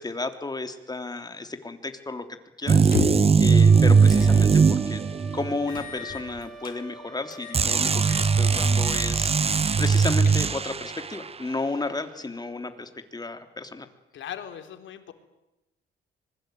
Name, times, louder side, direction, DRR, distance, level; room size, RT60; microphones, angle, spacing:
voice 1, 0.0-2.3 2.6-5.0 5.3-13.9, left 3 dB, 20° left, 8 dB, 3.2 m, -33 dB
sound 1, 2.7-5.5 7.5-11.0, right 5 dB, 30° right, 0.9 m, -19 dB
sound 2, 2.8-3.4 4.1-4.3 4.7-4.8 5.7-6.8 7.3-7.7 8.0-8.3 8.7-9.1 9.4-9.5 10.0-10.7, left 6 dB, 45° left, 5.1 m, -33 dB
sound 3, 3.5-9.5, right 3 dB, ahead, 4.3 m, -44 dB
voice 2, 14.1-15.1, left 9 dB, 70° left, 7 dB, 3.7 m, -38 dB
25.5 x 22.0 x 9.3 m, 0.94 s
cardioid pair, 90°, 20 cm